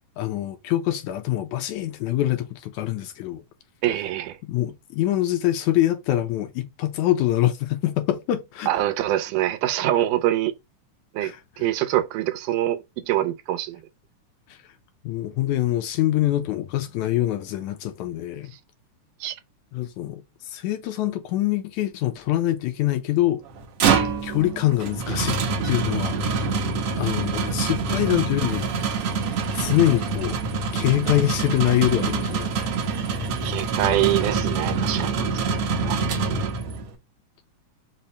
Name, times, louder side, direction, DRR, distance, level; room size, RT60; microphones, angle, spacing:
voice 1, 0.2-3.4 4.5-8.7 11.2-11.7 14.5-14.6 15.0-18.5 19.7-23.4 24.2-25.4 25.6-26.6 27.0-28.8 29.5-30.4 30.7-32.5, left 14 dB, 80° left, 1.8 m, -24 dB
voice 2, 3.8-4.4 8.7-10.5 11.1-13.8 19.2-19.4 33.4-35.5 35.8-36.0, right 13 dB, 90° right, 2.2 m, -24 dB
sound 1, 23.5-36.9, right 4 dB, 70° right, 1.4 m, -25 dB
5.5 x 2.1 x 4.0 m
omnidirectional pair, 3.6 m